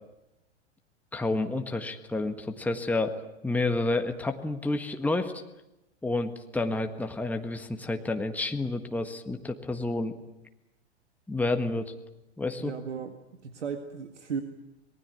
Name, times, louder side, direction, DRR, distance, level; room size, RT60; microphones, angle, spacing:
voice 1, 1.1-3.1 3.4-5.3 6.0-10.2 11.3-11.9 12.4-12.7, left 2 dB, 5° left, 5 dB, 1.6 m, -29 dB
voice 2, 12.6-13.2 13.4-14.4, right 6 dB, 80° right, 7 dB, 2.0 m, -35 dB
26.5 x 20.0 x 9.3 m, 0.95 s
hypercardioid pair, 105°, 34 cm